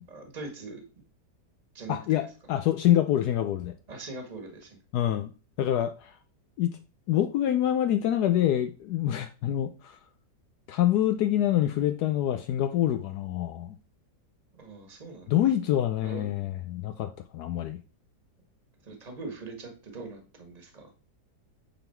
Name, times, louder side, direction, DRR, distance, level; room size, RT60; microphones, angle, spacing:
voice 1, 0.1-0.9 1.7-2.0 3.9-4.8 14.5-15.3 16.0-16.3 18.8-20.9, right 3 dB, 25° right, 4 dB, 1.4 m, -41 dB
voice 2, 1.9-3.7 4.9-5.3 5.6-6.1 6.6-6.8 7.1-10.0 10.7-13.7 15.3-17.8, left 11 dB, 75° left, 8 dB, 1.1 m, -26 dB
9.0 x 3.8 x 4.4 m, 0.35 s
omnidirectional pair, 1.8 m